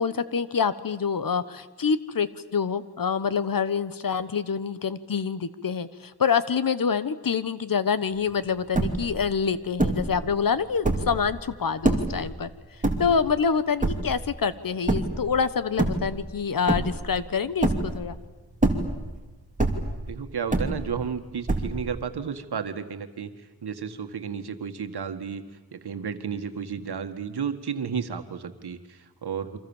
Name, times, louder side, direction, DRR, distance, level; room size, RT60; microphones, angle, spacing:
voice 1, 0.0-12.5 13.0-18.2, left 6 dB, 60° left, 14 dB, 1.3 m, -26 dB
sound 1, 8.3-8.4 8.6-9.2 9.8-10.2 10.7-11.2 11.8-12.2 12.8-13.4 13.8-14.3 14.9-15.3 15.7-16.4 16.7-17.2 17.6-18.1 18.5-19.2 19.6-20.1 20.5-21.1 21.5-22.0, right 2 dB, 20° right, 3.1 m, -25 dB
voice 2, 20.1-23.3 23.6-25.4 25.7-29.6, right 6 dB, 80° right, 8 dB, 1.9 m, -32 dB
29.0 x 25.0 x 7.3 m, 1.2 s
wide cardioid pair, 115°, 38 cm